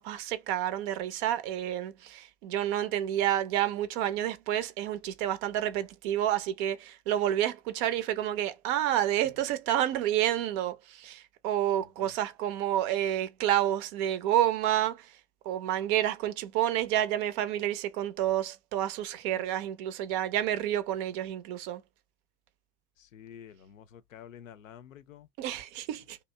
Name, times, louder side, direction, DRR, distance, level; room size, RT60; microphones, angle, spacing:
voice 1, 0.0-15.2 15.4-21.8 25.4-26.2, right 12 dB, 40° right, 0.5 m, -29 dB
voice 2, 23.1-25.3, left 9 dB, 80° left, 0.5 m, -49 dB
2.8 x 2.0 x 3.2 m
figure-of-eight pair, 80°, 39 cm